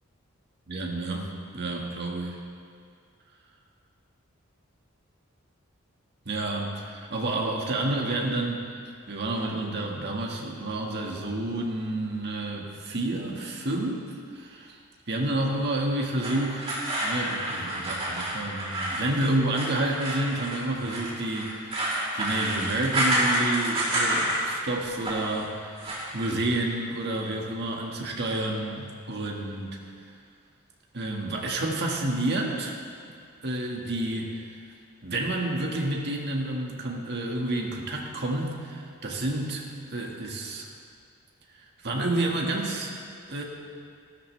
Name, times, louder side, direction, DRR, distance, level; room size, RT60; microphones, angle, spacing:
voice 1, 0.7-2.4 6.3-8.6 9.1-14.8 15.1-29.7 30.9-32.7 33.4-34.4 35.0-39.6 39.9-40.7 41.8-42.9 43.3-43.4, right 2 dB, 55° right, 0 dB, 1.7 m, -29 dB
sound 1, 16.2-24.6 24.9-25.4 25.7-26.3, right 1 dB, 30° right, 3.6 m, -29 dB
16.0 x 13.0 x 3.3 m, 2.2 s
head